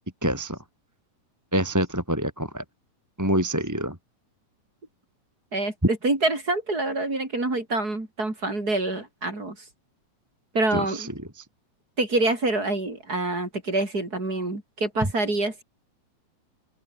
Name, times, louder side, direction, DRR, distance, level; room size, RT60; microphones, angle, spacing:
voice 1, 0.2-0.6 1.5-2.6 3.2-4.0 10.7-11.4, right 1 dB, 5° right, 2.5 m, -26 dB
voice 2, 5.5-9.6 10.5-11.1 12.0-15.6, right 2 dB, 25° right, 5.2 m, -26 dB
open air
omnidirectional pair, 4.1 m